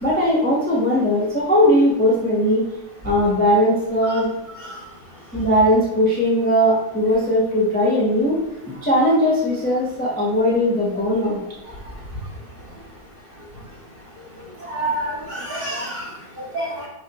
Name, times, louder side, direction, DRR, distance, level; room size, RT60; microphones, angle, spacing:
voice 1, 0.0-2.6 3.0-4.3 5.3-8.4 8.8-11.4, equal, 5° left, -6 dB, 1.1 m, -19 dB
voice 2, 14.6-16.1 16.5-16.9, right 1 dB, 35° right, -6 dB, 2.4 m, -28 dB
10.5 x 3.8 x 3.0 m, 0.89 s
omnidirectional pair, 1.7 m